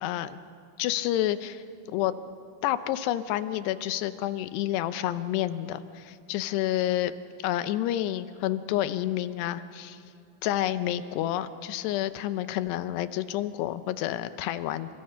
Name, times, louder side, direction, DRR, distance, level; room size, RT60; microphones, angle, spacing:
voice 1, 0.0-0.4 0.8-2.1 2.6-7.1 7.4-10.0 10.4-14.9, left 13 dB, 85° left, 12 dB, 2.9 m, -29 dB
29.5 x 26.5 x 5.7 m, 2.5 s
omnidirectional pair, 4.7 m